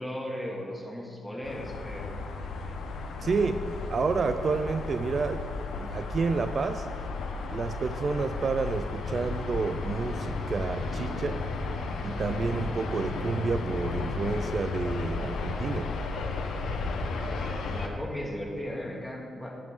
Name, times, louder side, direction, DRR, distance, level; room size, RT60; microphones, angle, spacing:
voice 1, 0.0-2.1 17.2-19.6, equal, 5° left, -2 dB, 2.1 m, -37 dB
sound 1, 1.4-17.9, left 3 dB, 80° left, 1.0 m, -34 dB
voice 2, 3.2-3.6 3.9-5.4 5.7-6.9 7.5-11.4 12.0-15.9, right 4 dB, 50° right, 9 dB, 0.4 m, -30 dB
10.5 x 8.9 x 3.8 m, 2.3 s
cardioid pair, 75°, 0 cm